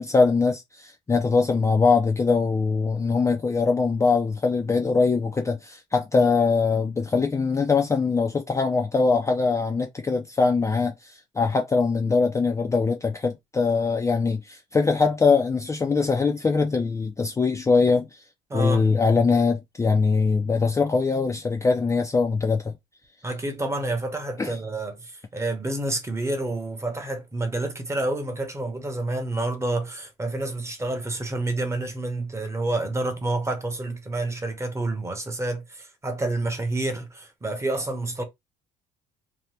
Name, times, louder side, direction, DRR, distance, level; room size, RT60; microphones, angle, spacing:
voice 1, 0.0-18.2 18.5-22.7 24.4-24.5, left 4 dB, 15° left, 0.4 m, -22 dB
voice 2, 18.5-18.9 23.2-38.2, right 2 dB, 15° right, 0.9 m, -29 dB
2.8 x 2.1 x 3.3 m
cardioid pair, 110°, 17 cm